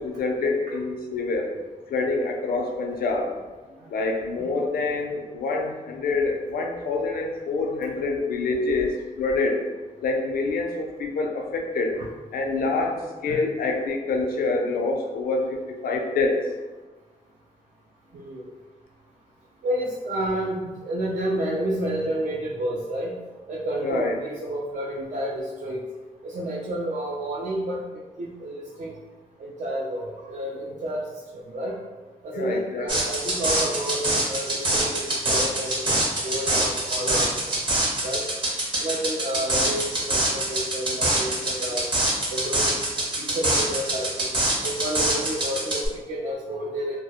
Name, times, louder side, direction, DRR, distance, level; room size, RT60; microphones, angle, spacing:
voice 1, 0.0-1.5 1.9-3.4 3.9-9.6 10.0-12.0 12.3-16.5 23.8-24.2 32.3-32.9 39.5-39.6, left 3 dB, 85° left, 2 dB, 0.4 m, -26 dB
voice 2, 18.1-18.4 19.6-23.1 23.5-25.8 26.2-27.8 28.2-28.9 29.4-31.1 31.3-31.8 32.2-37.4 38.0-38.2 38.8-41.8 42.3-42.9 43.1-44.3 44.6-47.0, right 1 dB, 55° right, -5 dB, 0.4 m, -30 dB
sound 1, 32.9-45.9, right 1 dB, 30° right, 0.9 m, -25 dB
2.3 x 2.0 x 2.8 m, 1.2 s
wide cardioid pair, 120°, 15 cm